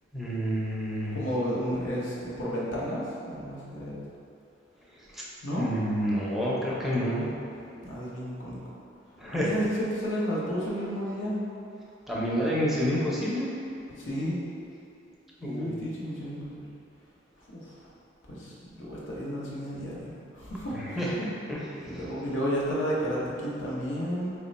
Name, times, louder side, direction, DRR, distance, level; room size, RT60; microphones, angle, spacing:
voice 1, 0.1-1.2 5.1-5.2 5.6-7.3 9.2-9.5 12.1-13.5 15.4-15.7 20.7-22.0, equal, ahead, -7 dB, 0.5 m, -29 dB
voice 2, 1.1-4.0 5.4-5.7 7.8-8.6 9.3-11.4 14.0-14.4 15.4-16.7 17.5-17.9 18.3-21.1 21.8-24.3, equal, 80° left, -6 dB, 0.8 m, -32 dB
3.2 x 2.2 x 4.0 m, 2.7 s
head